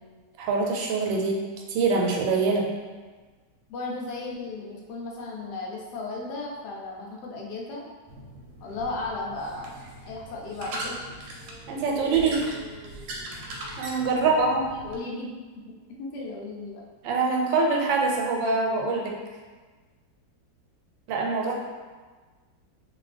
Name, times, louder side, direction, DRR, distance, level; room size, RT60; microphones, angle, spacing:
voice 1, 0.4-1.4 1.7-2.7 11.7-12.4 13.8-14.6 17.0-19.1 21.1-21.5, right 4 dB, 90° right, 0 dB, 1.3 m, -24 dB
voice 2, 3.7-7.8 8.6-11.0 14.1-14.3 14.7-15.3 15.7-16.8 21.3-21.5, left 3 dB, 75° left, -2 dB, 1.1 m, -35 dB
sound 1, 8.1-15.0, right 1 dB, 70° right, 1.0 m, -40 dB
2.8 x 2.5 x 3.2 m, 1.4 s
omnidirectional pair, 1.9 m